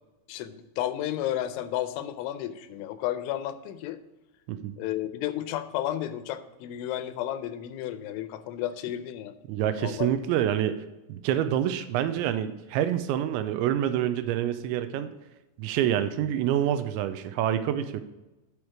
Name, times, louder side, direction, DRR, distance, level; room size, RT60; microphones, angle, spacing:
voice 1, 0.3-4.0 4.8-9.3 9.8-10.2, left 12 dB, 90° left, 11 dB, 3.1 m, -32 dB
voice 2, 9.5-10.8 11.1-15.1 15.6-18.0, right 10 dB, 85° right, 11 dB, 2.9 m, -27 dB
8.8 x 6.4 x 4.8 m, 1.0 s
omnidirectional pair, 5.4 m